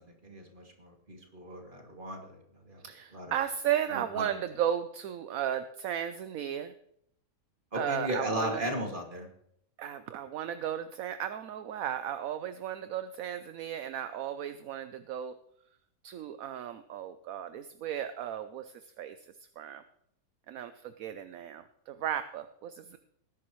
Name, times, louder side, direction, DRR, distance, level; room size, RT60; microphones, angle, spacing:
voice 1, 0.0-2.8 3.1-3.3 3.9-4.2 7.7-9.3, equal, 30° right, 1 dB, 2.6 m, -36 dB
voice 2, 2.8-6.7 7.7-8.6 9.8-15.4 16.0-19.2 19.6-19.8 20.5-23.0, right 10 dB, 65° right, 10 dB, 0.9 m, -35 dB
19.0 x 10.5 x 3.1 m, 0.72 s
omnidirectional pair, 1.9 m